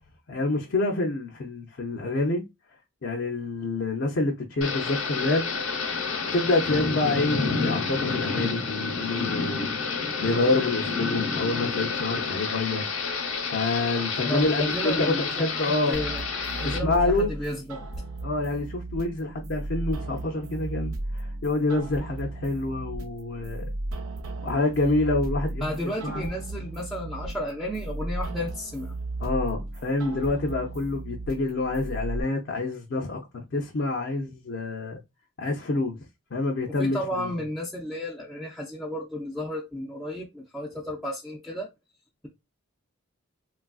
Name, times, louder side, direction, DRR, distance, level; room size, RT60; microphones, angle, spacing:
voice 1, 0.3-2.4 3.0-5.4 6.3-9.7 10.2-12.9 13.4-16.0 16.6-17.3 18.2-23.7 24.4-26.3 29.2-33.2 33.5-35.0 35.4-36.0 36.3-37.3, left 2 dB, 60° left, 0.5 m, -27 dB
Thunder / Rain, 4.6-16.8, left 4 dB, 80° left, 0.9 m, -29 dB
voice 2, 14.2-16.2 16.6-17.9 25.6-29.0 36.8-41.7, equal, ahead, 0.4 m, -32 dB
sound 1, 15.9-32.2, right 2 dB, 75° right, 0.5 m, -35 dB
3.2 x 2.4 x 2.3 m
head